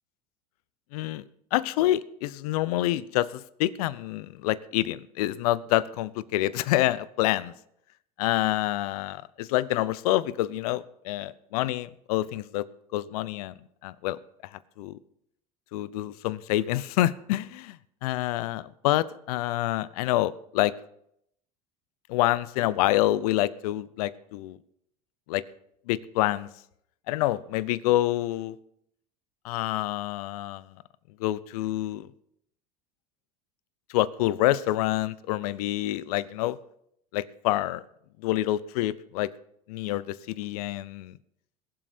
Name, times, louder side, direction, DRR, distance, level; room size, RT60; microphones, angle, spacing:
voice 1, 0.9-1.2 1.5-7.5 8.2-12.6 12.9-13.5 13.8-14.2 14.5-15.0 15.7-20.7 22.1-24.6 25.3-25.4 25.9-26.5 27.1-28.6 29.4-30.7 31.2-32.1 33.9-36.6 37.1-37.8 38.2-39.3 39.7-41.2, left 15 dB, 70° left, 19 dB, 0.7 m, -27 dB
21.5 x 7.7 x 4.3 m, 0.72 s
hypercardioid pair, 90°, 20 cm